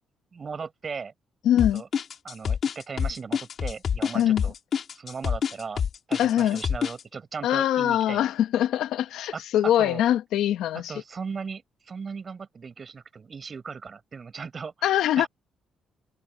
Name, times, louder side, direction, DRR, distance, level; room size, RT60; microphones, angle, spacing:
voice 1, 0.3-1.1 1.7-1.9 2.2-4.5 5.0-5.8 6.1-8.3 9.3-10.0 10.9-15.3, right 5 dB, 40° right, 7.4 m, -37 dB
voice 2, 1.4-1.8 4.1-4.4 6.2-6.6 7.4-10.9 14.8-15.3, left 11 dB, 85° left, 1.1 m, -23 dB
sound 1, 1.6-7.0, left 7 dB, 55° left, 3.4 m, -27 dB
cardioid pair, 90°, 0 cm